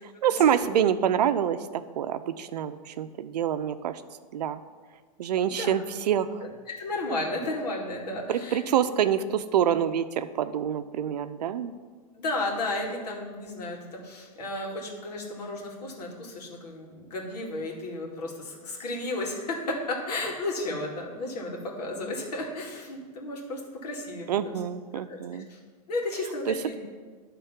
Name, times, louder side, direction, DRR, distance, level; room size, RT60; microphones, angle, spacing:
voice 1, 0.2-4.0 4.3-4.6 5.2-6.4 8.3-11.7 24.3-25.5 26.5-26.6, right 9 dB, 85° right, 11 dB, 0.6 m, -26 dB
voice 2, 6.8-8.9 12.1-24.5 25.1-25.2 25.5-25.6 25.9-26.8, left 2 dB, 85° left, -1 dB, 2.3 m, -33 dB
11.0 x 3.7 x 5.7 m, 1.5 s
hypercardioid pair, 130°, 20 cm